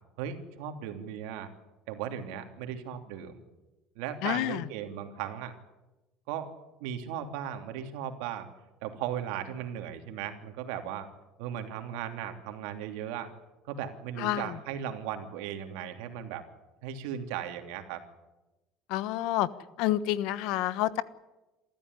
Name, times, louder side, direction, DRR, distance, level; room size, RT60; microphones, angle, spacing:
voice 1, 0.2-1.5 1.9-3.4 3.9-5.5 6.3-6.5 6.8-8.5 8.8-11.1 11.4-13.3 13.7-16.4 16.8-18.0, right 9 dB, 85° right, 6 dB, 3.1 m, -37 dB
voice 2, 4.2-4.7 14.2-14.6 18.9-19.5 19.8-21.0, left 14 dB, 75° left, 16 dB, 1.2 m, -28 dB
27.0 x 14.0 x 9.8 m, 1.0 s
cardioid pair, 130°, 0 cm